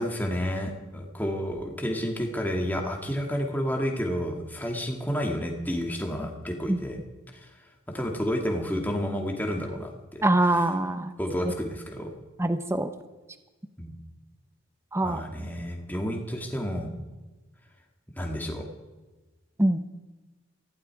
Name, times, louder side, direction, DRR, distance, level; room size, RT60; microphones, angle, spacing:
voice 1, 0.0-7.0 7.3-7.5 7.9-10.2 11.2-12.1 13.8-14.0 15.0-16.9 18.2-18.7, equal, 10° left, 2 dB, 2.2 m, -30 dB
voice 2, 10.2-11.1 12.4-12.9 14.9-15.2 19.6-19.9, right 1 dB, 10° right, 10 dB, 0.8 m, -23 dB
19.0 x 15.5 x 4.8 m, 1.2 s
head